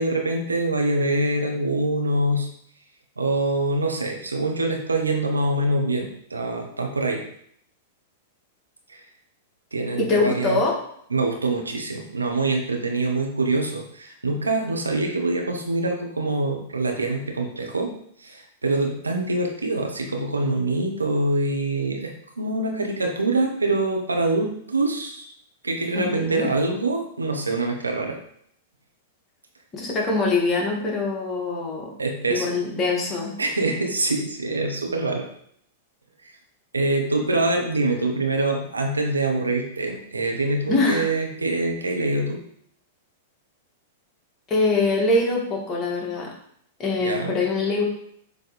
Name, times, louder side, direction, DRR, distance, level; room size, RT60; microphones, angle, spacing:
voice 1, 0.0-2.5 3.2-7.2 8.9-9.0 9.7-10.6 11.1-17.9 18.2-25.3 25.6-28.2 32.0-32.5 33.4-35.2 36.2-36.3 36.7-42.4 47.0-47.3, right 2 dB, 85° right, 2 dB, 1.1 m, -25 dB
voice 2, 10.0-10.7 26.0-26.5 29.7-31.9 32.3-33.3 40.7-41.1 44.5-46.3 46.8-47.8, left 3 dB, 25° left, -2 dB, 2.0 m, -23 dB
7.1 x 3.3 x 4.2 m, 0.67 s
figure-of-eight pair, 100°, 0 cm